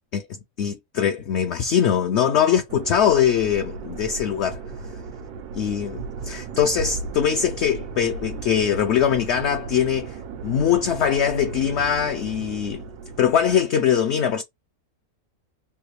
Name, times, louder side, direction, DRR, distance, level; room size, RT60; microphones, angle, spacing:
voice 1, 0.6-4.6 5.5-10.2 10.4-12.8 13.2-14.4, left 8 dB, 70° left, 0.6 m, -22 dB
sound 1, 2.7-13.6, right 4 dB, 85° right, 1.2 m, -35 dB
3.4 x 2.4 x 3.1 m
omnidirectional pair, 1.6 m